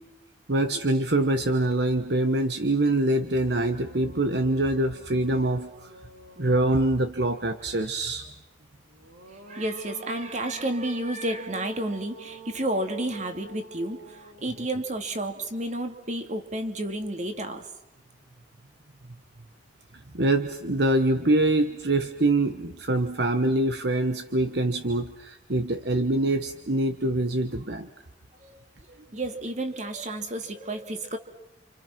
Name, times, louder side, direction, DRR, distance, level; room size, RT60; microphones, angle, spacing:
voice 1, 0.5-5.9 6.4-8.2 20.1-27.9, right 1 dB, 60° right, 8 dB, 1.2 m, -24 dB
sound 1, 3.0-3.1 3.5-7.2 8.8-16.1, right 3 dB, 80° right, 3.3 m, -47 dB
voice 2, 9.5-17.7 28.4-28.5 28.9-31.2, right 1 dB, 40° right, 6 dB, 2.6 m, -31 dB
29.5 x 28.0 x 6.0 m, 0.90 s
head